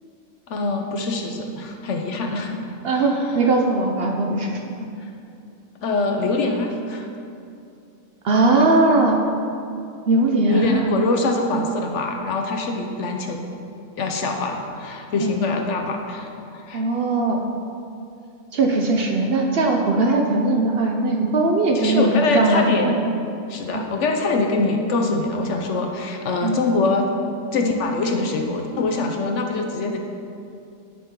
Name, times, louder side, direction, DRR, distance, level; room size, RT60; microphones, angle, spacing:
voice 1, 0.5-2.5 2.9-3.1 5.8-7.1 10.5-13.4 14.0-16.8 21.7-22.9 23.5-27.1 27.5-30.0, left 3 dB, 65° left, 3 dB, 1.0 m, -24 dB
voice 2, 2.8-4.8 8.2-9.2 10.1-10.9 15.2-15.3 16.7-17.4 18.5-22.9 23.7-23.9 26.4-26.6, right 2 dB, 60° right, 1 dB, 0.7 m, -19 dB
11.5 x 4.3 x 3.7 m, 2.5 s
omnidirectional pair, 1.4 m